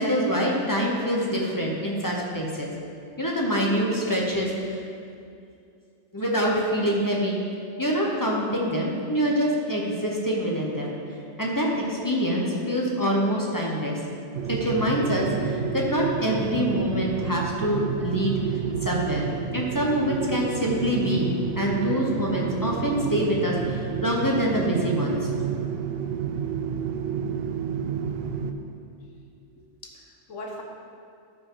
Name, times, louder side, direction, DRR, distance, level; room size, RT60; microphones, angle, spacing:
voice 1, 0.0-2.7 3.2-4.8 6.1-7.4 7.8-11.0 11.4-14.0 14.5-19.3 19.5-25.3, equal, 15° left, -2 dB, 1.0 m, -25 dB
sound 1, 14.3-28.5, right 7 dB, 65° right, 0.7 m, -30 dB
voice 2, 29.6-30.6, left 1 dB, 80° left, 0 dB, 1.5 m, -40 dB
12.0 x 5.7 x 3.9 m, 2.4 s
omnidirectional pair, 1.3 m